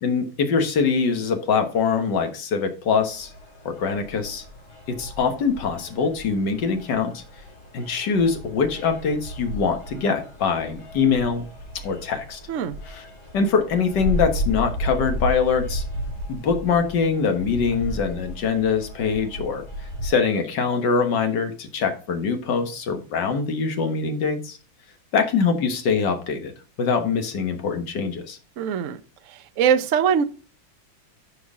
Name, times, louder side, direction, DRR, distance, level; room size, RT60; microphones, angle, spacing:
voice 1, 0.0-3.3 3.7-4.4 4.9-7.2 7.7-11.5 11.8-12.4 12.9-13.0 13.3-15.8 16.3-24.6 25.1-26.5 26.8-28.4, left 5 dB, 65° left, 6 dB, 1.9 m, -23 dB
sound 1, 3.0-20.1, equal, 40° left, 3.3 m, -34 dB
voice 2, 28.6-29.0 29.3-30.2, right 8 dB, 60° right, 11 dB, 0.8 m, -22 dB
11.5 x 4.7 x 3.6 m, 0.37 s
omnidirectional pair, 2.1 m